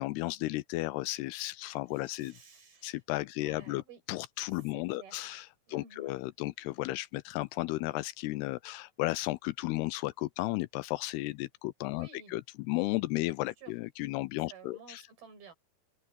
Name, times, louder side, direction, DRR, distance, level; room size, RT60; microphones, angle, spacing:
voice 1, 0.0-2.4 2.8-15.0, left 19 dB, 85° left, 2.5 m, -34 dB
voice 2, 2.0-3.0 3.4-4.0 4.7-5.3 5.7-6.1 11.9-12.3 13.6-13.7 14.5-15.5, right 5 dB, 60° right, 7.4 m, -53 dB
open air
omnidirectional pair, 4.8 m